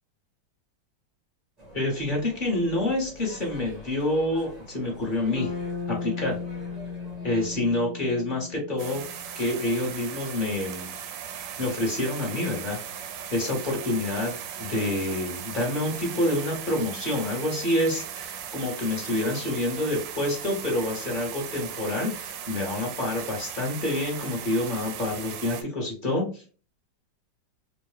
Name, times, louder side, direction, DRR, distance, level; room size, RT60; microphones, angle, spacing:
sound 1, 1.6-7.7, equal, 35° right, 0.7 m, -46 dB
voice 1, 1.7-5.5 5.9-6.4 7.2-9.0 9.3-10.9 11.6-12.8 13.3-26.4, left 1 dB, 30° left, -2 dB, 1.3 m, -27 dB
Bass guitar, 5.4-9.4, left 5 dB, 65° left, 0.7 m, -36 dB
sound 2, 8.8-25.6, right 8 dB, 75° right, 1.2 m, -38 dB
3.7 x 2.5 x 3.2 m, 0.37 s
omnidirectional pair, 2.1 m